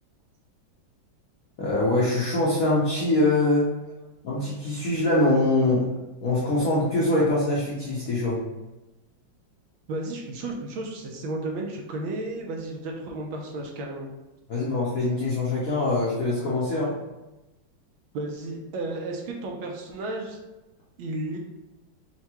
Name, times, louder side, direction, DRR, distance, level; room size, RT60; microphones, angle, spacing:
voice 1, 1.6-3.7 4.2-5.9 6.2-8.4 14.5-16.9, left 2 dB, 60° left, -7 dB, 0.9 m, -23 dB
voice 2, 9.9-14.1 18.1-20.4 21.0-21.4, right 2 dB, 80° right, 0 dB, 1.4 m, -33 dB
5.6 x 2.2 x 2.9 m, 1.0 s
omnidirectional pair, 2.3 m